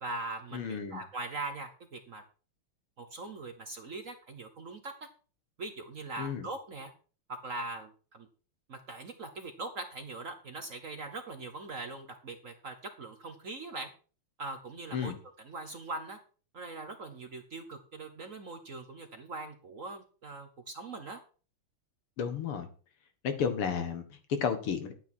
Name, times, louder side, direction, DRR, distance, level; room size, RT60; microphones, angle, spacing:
voice 1, 0.0-2.2 3.0-5.1 5.6-6.9 7.4-8.3 8.7-13.9 14.4-15.1 15.4-16.2 16.5-21.2, right 3 dB, 45° right, 8 dB, 1.1 m, -41 dB
voice 2, 0.5-1.0 6.2-6.4 14.9-15.1 22.2-22.7 23.2-24.9, left 7 dB, 80° left, 8 dB, 2.4 m, -32 dB
11.5 x 9.2 x 4.4 m, 0.37 s
omnidirectional pair, 2.4 m